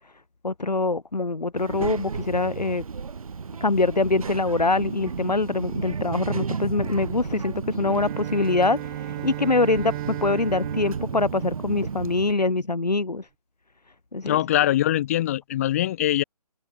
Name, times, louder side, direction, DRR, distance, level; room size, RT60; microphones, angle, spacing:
voice 1, 0.4-2.8 3.6-13.3 14.1-14.4, left 3 dB, 90° left, 3.3 m, -24 dB
Child speech kid speaking, 1.6-12.3, right 5 dB, 60° right, 3.8 m, -33 dB
Bowed string instrument, 7.8-12.4, right 21 dB, 20° right, 1.4 m, -36 dB
voice 2, 14.2-16.2, left 13 dB, 20° left, 0.7 m, -22 dB
open air
figure-of-eight pair, 155°, 20 cm